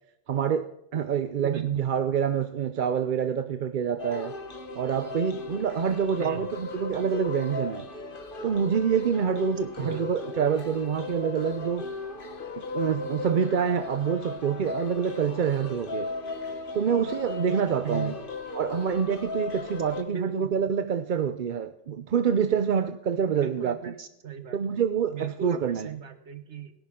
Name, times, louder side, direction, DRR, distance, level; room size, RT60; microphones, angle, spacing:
voice 1, 0.3-4.3 4.7-7.9 8.4-11.9 12.6-16.1 16.7-18.1 18.6-23.7 24.5-25.9, right 7 dB, 55° right, 0.7 m, -26 dB
voice 2, 1.4-1.9 6.2-6.5 9.8-10.3 12.7-12.8 17.8-18.3 20.1-20.5 23.4-24.8 25.1-26.7, right 8 dB, 80° right, 1.6 m, -37 dB
sound 1, 4.0-20.0, left 3 dB, 50° left, 1.5 m, -37 dB
17.0 x 10.5 x 3.7 m
omnidirectional pair, 1.2 m